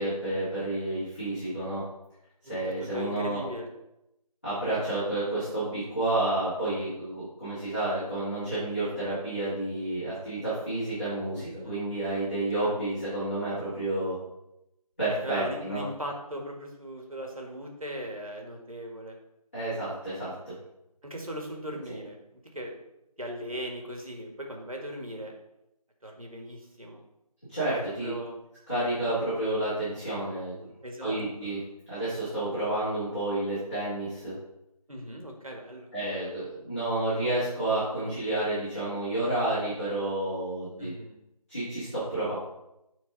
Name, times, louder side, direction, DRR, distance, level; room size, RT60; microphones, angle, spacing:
voice 1, 0.0-1.8 2.4-3.4 4.4-14.2 15.0-15.8 19.5-20.5 27.5-28.1 28.7-30.5 31.0-31.6 31.9-34.3 35.9-40.9 41.5-42.4, right 2 dB, 20° left, -15 dB, 3.6 m, -30 dB
voice 2, 2.8-3.7 11.4-11.8 12.6-12.7 15.2-19.2 21.0-22.7 23.2-25.3 26.0-27.0 28.0-28.4 30.8-31.6 34.9-35.9 40.8-41.2, equal, 60° right, 1 dB, 2.0 m, -38 dB
13.0 x 4.6 x 4.1 m, 0.87 s
figure-of-eight pair, 175°, 20 cm